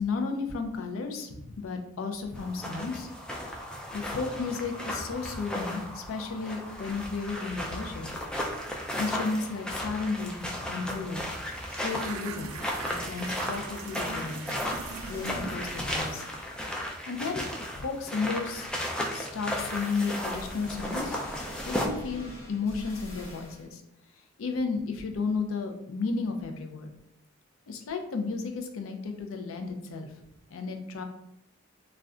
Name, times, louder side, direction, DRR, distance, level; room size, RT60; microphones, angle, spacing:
voice 1, 0.0-3.1 3.5-8.1 9.0-11.2 11.7-12.6 12.8-14.4 15.1-16.2 16.6-16.7 17.0-17.5 17.8-18.7 19.1-21.2 21.7-23.8 24.4-26.9 27.7-30.1 30.5-31.0, left 4 dB, 90° left, 5 dB, 0.4 m, -33 dB
sound 1, 2.3-21.9, left 1 dB, 5° left, 0.3 m, -35 dB
sound 2, 10.8-10.9 11.2-16.2, right 6 dB, 85° right, 0.3 m, -42 dB
sound 3, 11.1-12.3 12.6-16.7 19.5-23.7, equal, 70° left, 1.0 m, -46 dB
2.4 x 2.1 x 3.6 m, 0.83 s
head